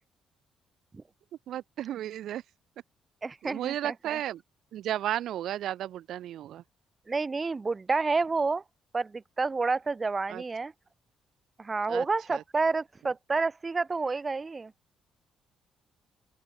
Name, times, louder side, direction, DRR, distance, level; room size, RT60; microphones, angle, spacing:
voice 1, 1.5-2.4 3.4-4.4 4.7-6.6 10.3-10.4 11.9-12.1 12.3-12.4, right 12 dB, 75° right, 1.7 m, -33 dB
voice 2, 3.2-4.2 7.1-8.6 8.9-10.7 11.6-14.7, right 4 dB, 30° right, 3.2 m, -29 dB
open air
cardioid pair, 90°, 0 cm